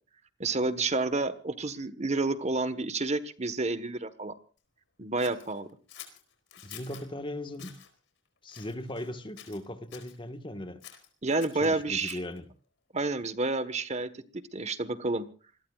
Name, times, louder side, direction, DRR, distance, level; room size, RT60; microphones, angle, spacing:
voice 1, 0.4-4.4 5.0-5.7 11.2-12.2 12.9-15.3, right 3 dB, 35° right, 1.3 m, -30 dB
Scissors, 5.2-7.1 7.5-7.9 8.5-9.1 9.4-10.2 10.8-12.4, left 10 dB, 80° left, 4.6 m, -49 dB
voice 2, 6.6-7.8 8.4-10.9 11.6-12.5, left 1 dB, 25° left, 1.6 m, -38 dB
27.5 x 21.0 x 2.4 m
head